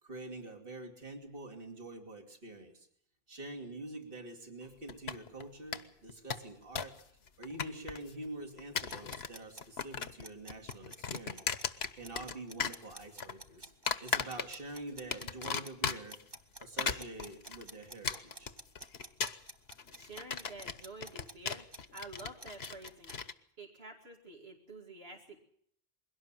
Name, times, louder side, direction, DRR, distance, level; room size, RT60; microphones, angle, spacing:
voice 1, 0.0-2.9 3.3-6.9 7.4-11.6 11.9-13.7 14.0-16.2 16.6-18.5, right 2 dB, 60° right, 3 dB, 3.0 m, -46 dB
sound 1, 4.9-5.4 5.7-5.8 6.1-7.0 7.3-8.1 8.6-9.4 9.6-10.2 10.5-12.3 12.6-13.3 13.9-14.7 15.1-16.2 16.6-23.3, left 6 dB, 80° left, 1.3 m, -37 dB
sound 2, 8.9-23.2, right 2 dB, 25° right, 1.1 m, -50 dB
voice 2, 19.9-23.2 23.6-25.4, right 2 dB, 80° right, 1 dB, 2.7 m, -49 dB
22.0 x 17.5 x 7.5 m, 0.67 s
omnidirectional pair, 1.0 m